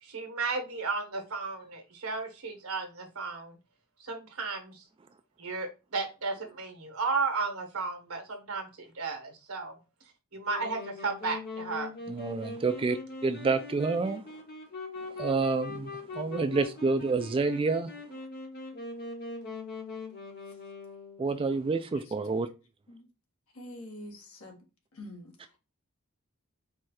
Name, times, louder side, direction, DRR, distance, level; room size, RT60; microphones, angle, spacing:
voice 1, 0.0-3.6 4.0-4.9 5.4-9.7 10.3-11.9, right 4 dB, 75° right, 1.2 m, -34 dB
Wind instrument woodwind instrument, 10.5-21.4, left 3 dB, 50° left, 1.3 m, -41 dB
voice 2, 12.1-13.0 13.2-14.2 15.2-17.9 21.2-22.5, right 4 dB, 25° right, 0.3 m, -28 dB
voice 3, 23.5-24.6 24.9-25.6, left 1 dB, 75° left, 1.3 m, -46 dB
4.7 x 2.3 x 4.2 m
head